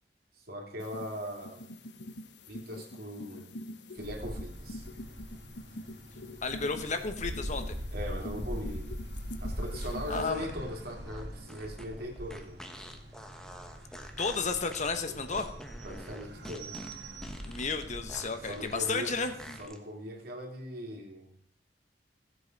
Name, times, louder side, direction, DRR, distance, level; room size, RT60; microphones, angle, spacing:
voice 1, 0.5-1.6 2.5-3.5 3.9-4.9 7.9-9.0 9.4-12.6 15.1-15.2 15.8-16.9 18.4-19.1 19.6-21.3, equal, 60° right, 2 dB, 2.9 m, -40 dB
sound 1, 0.8-10.3, left 1 dB, 80° left, 1.1 m, -46 dB
sound 2, 4.0-19.6, equal, 75° right, 2.5 m, -42 dB
voice 2, 6.4-7.8 10.1-10.5 14.2-15.5 17.4-19.6, left 4 dB, 40° left, 8 dB, 1.1 m, -32 dB
sound 3, 10.2-19.8, equal, 5° left, 1.2 m, -48 dB
16.0 x 7.9 x 5.3 m, 0.63 s
head